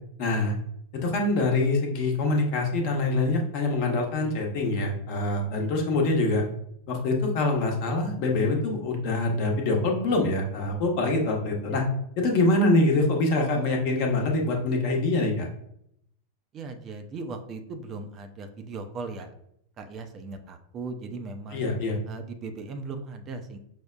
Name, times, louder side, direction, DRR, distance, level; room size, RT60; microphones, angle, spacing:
voice 1, 0.2-0.5 0.9-6.4 6.9-11.8 12.2-15.5 21.5-22.0, left 2 dB, 45° left, 1 dB, 0.9 m, -25 dB
voice 2, 16.5-19.3 19.8-21.6 22.1-23.6, right 3 dB, 30° right, 6 dB, 0.4 m, -38 dB
5.6 x 2.1 x 2.4 m, 0.72 s
figure-of-eight pair, 90°, 0 cm